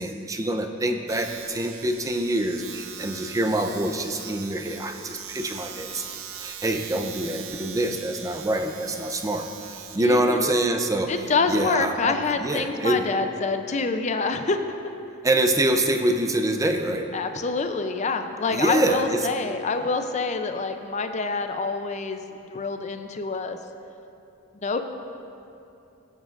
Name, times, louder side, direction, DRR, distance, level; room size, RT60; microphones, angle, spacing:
voice 1, 0.0-6.1 6.4-9.5 9.9-11.1 11.5-13.0 15.2-17.1 18.5-19.2, right 1 dB, 15° right, 5 dB, 0.5 m, -25 dB
Domestic sounds home sounds, 1.1-11.5, right 8 dB, 85° right, 0.6 m, -41 dB
voice 2, 10.0-10.5 11.1-14.6 17.1-23.6 24.6-24.8, left 4 dB, 35° left, 7 dB, 0.5 m, -26 dB
17.5 x 7.6 x 2.5 m, 2.7 s
head